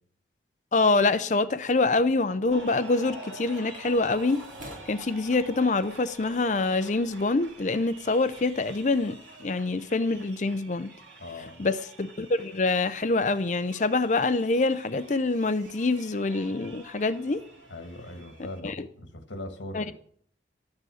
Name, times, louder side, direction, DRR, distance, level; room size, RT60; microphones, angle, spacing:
voice 1, 0.7-4.4 4.9-10.9 11.6-17.4 18.6-18.7 19.7-19.9, left 3 dB, 40° left, 0.5 m, -25 dB
sound 1, 2.5-18.6, right 3 dB, 80° right, 2.6 m, -48 dB
sound 2, 3.9-9.2, equal, 45° right, 5.2 m, -52 dB
voice 2, 11.2-11.7 17.7-19.9, left 1 dB, 75° left, 2.0 m, -40 dB
13.0 x 9.6 x 6.3 m
head